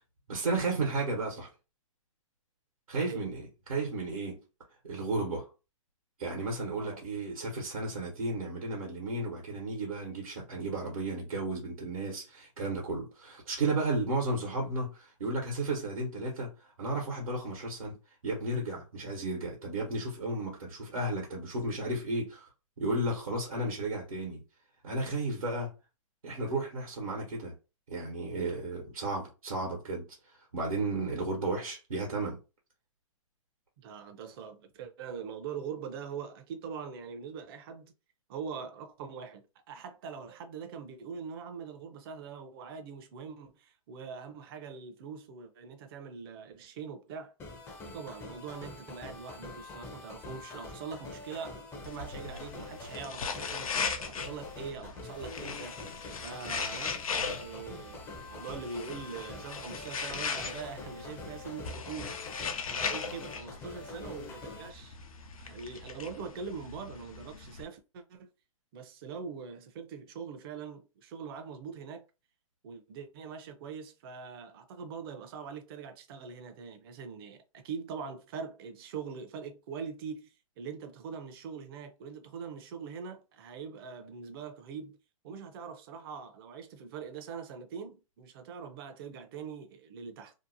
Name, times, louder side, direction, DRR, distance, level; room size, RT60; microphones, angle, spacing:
voice 1, 0.3-1.5 2.9-4.4 4.8-5.5 6.2-16.5 16.8-17.9 18.2-22.5 22.8-24.4 24.8-25.7 26.2-27.5 27.9-30.0 30.5-32.4, right 2 dB, 90° right, 1.1 m, -33 dB
voice 2, 3.0-3.3 6.8-7.0 33.8-37.9 38.3-47.3 47.8-53.7 54.0-55.8 56.2-56.9 57.3-58.0 58.3-62.2 62.6-65.0 65.4-68.3 68.7-72.0 72.6-85.0 85.2-90.3, right 6 dB, 45° right, 0.6 m, -43 dB
sound 1, 47.4-64.7, left 3 dB, 15° left, 0.5 m, -45 dB
sound 2, 51.8-67.6, left 5 dB, 85° left, 0.5 m, -39 dB
2.8 x 2.0 x 2.6 m
hypercardioid pair, 130°, 18 cm